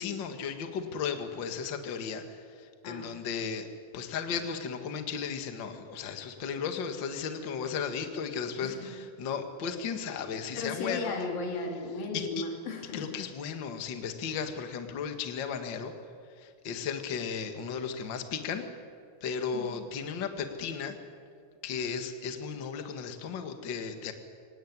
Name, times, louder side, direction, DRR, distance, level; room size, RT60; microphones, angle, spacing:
voice 1, 0.0-3.7 3.9-11.2 12.1-12.4 12.9-15.9 16.4-18.7 19.2-21.0 21.6-24.1, left 6 dB, 40° left, 7 dB, 1.9 m, -35 dB
voice 2, 8.6-9.0 10.5-13.2 19.5-19.9, left 3 dB, 90° left, 3 dB, 4.3 m, -36 dB
24.5 x 18.5 x 9.7 m, 2.3 s
omnidirectional pair, 3.9 m